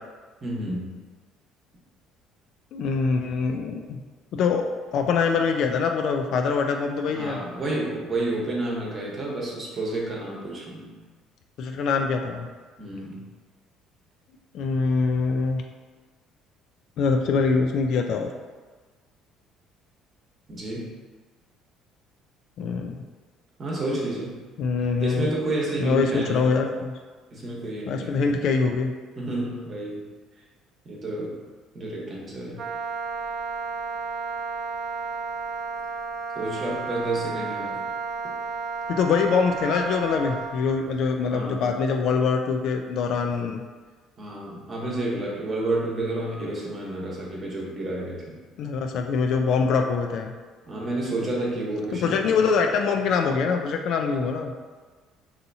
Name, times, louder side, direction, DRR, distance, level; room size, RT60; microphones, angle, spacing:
voice 1, 0.4-0.9 7.1-10.9 12.8-13.2 20.5-20.9 23.6-24.4 25.0-26.4 27.3-28.2 29.2-30.0 30.8-31.4 31.7-32.6 36.3-37.8 41.3-41.6 44.2-48.2 50.6-52.4, right 2 dB, 25° right, -4 dB, 1.0 m, -30 dB
voice 2, 2.7-4.0 4.3-4.6 4.9-7.4 11.6-12.5 14.5-15.6 17.0-18.3 22.6-22.9 24.6-25.3 25.8-26.9 27.9-28.9 39.0-43.6 48.6-50.3 51.9-54.5, left 5 dB, 55° left, 3 dB, 0.3 m, -24 dB
Wind instrument woodwind instrument, 32.6-40.6, right 4 dB, 50° right, 0.5 m, -32 dB
5.6 x 2.7 x 2.7 m, 1.4 s
cardioid pair, 150°, 0 cm